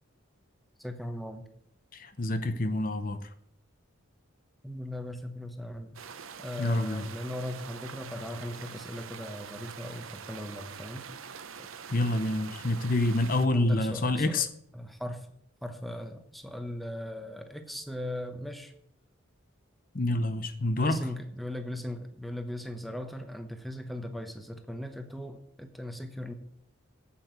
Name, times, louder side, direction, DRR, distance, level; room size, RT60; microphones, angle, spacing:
voice 1, 0.8-1.5 4.6-6.0 6.4-11.1 13.5-14.4 14.7-15.3 15.6-18.7 20.7-26.3, left 1 dB, ahead, 7 dB, 0.9 m, -38 dB
voice 2, 1.9-3.3 6.6-7.1 11.9-14.5 19.9-21.0, left 2 dB, 40° left, 10 dB, 0.7 m, -27 dB
sound 1, 6.0-13.5, right 6 dB, 75° right, 0.9 m, -44 dB
8.5 x 8.1 x 8.0 m, 0.72 s
head